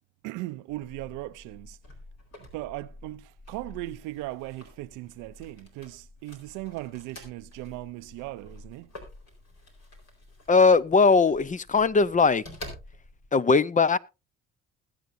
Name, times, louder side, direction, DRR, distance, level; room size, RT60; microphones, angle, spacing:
voice 1, 0.2-1.8 2.4-8.9, right 18 dB, 85° right, 0.6 m, -38 dB
sound 1, 0.7-13.3, left 1 dB, 60° left, 4.3 m, -48 dB
voice 2, 10.5-12.4 13.3-14.0, left 4 dB, 25° left, 0.6 m, -20 dB
20.5 x 7.9 x 2.7 m
supercardioid pair, 65°, 30 cm